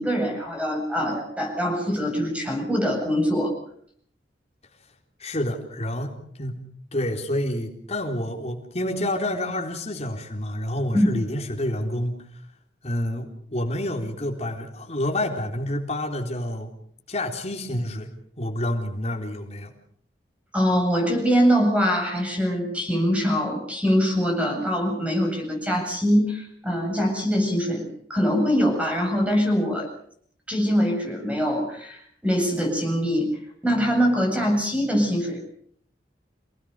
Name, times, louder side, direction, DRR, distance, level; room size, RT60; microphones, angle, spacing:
voice 1, 0.0-3.5 10.9-11.1 20.5-29.9 30.5-33.3 33.6-35.4, equal, 5° right, 1 dB, 7.9 m, -23 dB
voice 2, 5.2-6.6 6.9-12.4 12.8-16.7 17.1-18.1 18.4-19.7, left 1 dB, 35° left, 2 dB, 4.0 m, -28 dB
28.5 x 19.0 x 6.7 m, 0.63 s
head